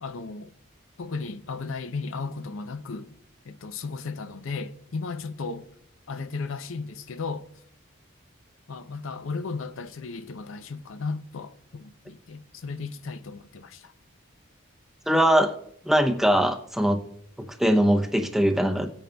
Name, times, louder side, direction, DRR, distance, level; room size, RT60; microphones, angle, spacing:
voice 1, 0.0-0.5 1.0-3.2 3.4-5.7 6.1-7.5 8.7-13.9, left 4 dB, 75° left, 0.6 m, -35 dB
voice 2, 15.1-15.5 15.9-17.0 17.6-18.9, equal, ahead, 0.6 m, -21 dB
17.0 x 8.8 x 2.3 m
head